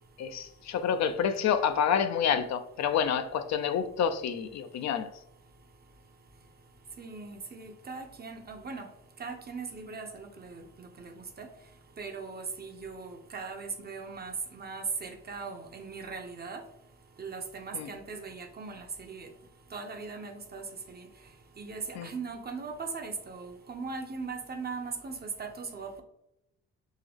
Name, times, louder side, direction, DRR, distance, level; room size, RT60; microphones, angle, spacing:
voice 1, 0.2-5.1 17.7-17.9 22.0-22.1, left 7 dB, 65° left, 0.4 m, -28 dB
voice 2, 7.0-8.8 9.2-11.5 12.0-16.6 17.2-19.3 19.7-21.0 21.6-26.0, right 4 dB, 30° right, 0.7 m, -39 dB
3.7 x 2.9 x 3.4 m
cardioid pair, 90°, 30 cm